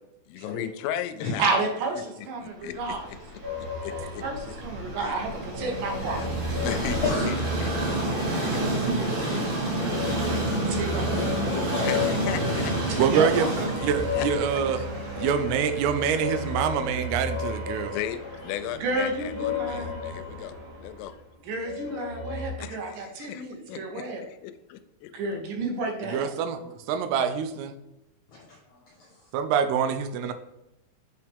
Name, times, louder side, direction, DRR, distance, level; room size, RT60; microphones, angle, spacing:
voice 1, 0.3-1.4 2.0-2.1 2.4-3.0 3.6-4.2 5.0-5.2 6.0-6.3 6.6-7.0 7.3-10.2 11.8-13.0 14.1-14.6 17.9-18.2 18.4-20.5 20.8-21.2 22.6-25.1, left 11 dB, 90° left, 11 dB, 2.6 m, -37 dB
voice 2, 1.4-3.1 3.9-6.6 8.5-8.6 8.8-9.0 10.3-11.1 13.0-13.7 18.8-20.0 21.4-24.2 25.1-26.3, right 3 dB, 70° right, 2 dB, 2.4 m, -31 dB
Train, 2.8-20.9, right 1 dB, 40° right, 2.1 m, -31 dB
sound 1, 3.4-5.0 5.4-8.9 9.8-21.1 21.4-22.5, left 4 dB, 30° left, 2.7 m, -34 dB
voice 3, 10.9-11.9 26.6-26.7 28.3-29.2, left 4 dB, 65° left, -3 dB, 2.1 m, -33 dB
voice 4, 13.0-13.5 13.8-14.9 15.2-18.0 26.1-26.6 26.9-27.7 29.3-30.3, right 7 dB, 85° right, 9 dB, 2.6 m, -25 dB
7.5 x 4.7 x 3.5 m, 0.90 s
omnidirectional pair, 4.5 m